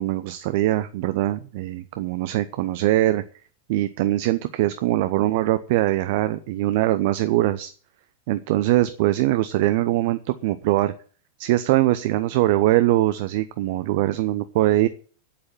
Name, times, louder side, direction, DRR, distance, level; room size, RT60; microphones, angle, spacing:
voice 1, 0.0-3.2 3.7-7.7 8.3-10.9 11.4-14.9, right 15 dB, 50° right, 12 dB, 0.7 m, -22 dB
8.8 x 8.5 x 9.1 m, 0.42 s
figure-of-eight pair, 90°, 0 cm